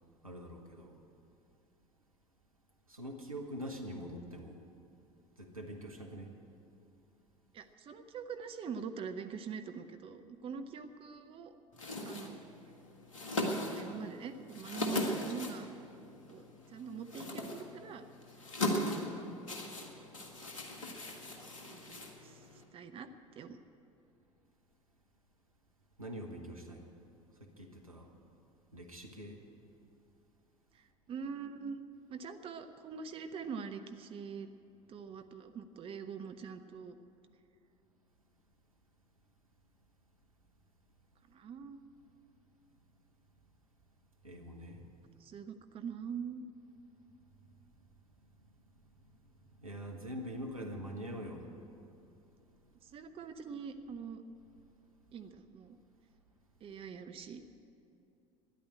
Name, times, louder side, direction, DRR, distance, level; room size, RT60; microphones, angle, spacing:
voice 1, 0.2-1.0 2.9-4.6 5.4-6.3 26.0-26.9 27.4-28.1 28.7-29.4 44.2-44.9 48.2-51.5, equal, 85° right, 2 dB, 1.3 m, -45 dB
voice 2, 7.5-11.5 12.0-12.4 13.5-15.7 16.3-18.0 21.7-23.6 30.7-31.8 32.1-34.5 34.9-37.0 41.3-41.8 45.2-46.4 52.8-54.2 55.1-55.8 56.6-57.4, right 6 dB, 30° right, 8 dB, 0.8 m, -44 dB
sound 1, 11.7-22.6, left 1 dB, 75° left, 1.6 m, -39 dB
13.5 x 10.5 x 8.9 m, 2.6 s
figure-of-eight pair, 65°, 17 cm